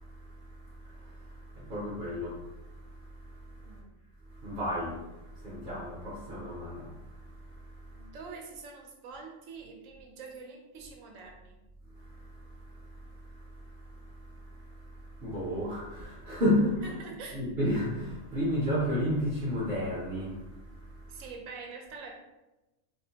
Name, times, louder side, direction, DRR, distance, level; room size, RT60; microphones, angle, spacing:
voice 1, 0.0-3.8 4.3-8.1 11.9-17.0 17.3-21.2, left 1 dB, 50° right, -8 dB, 0.7 m, -34 dB
voice 2, 3.6-4.0 7.9-11.6 16.8-17.4 21.1-22.1, right 4 dB, 85° right, 1 dB, 1.0 m, -45 dB
2.8 x 2.0 x 2.7 m, 1.0 s
omnidirectional pair, 1.3 m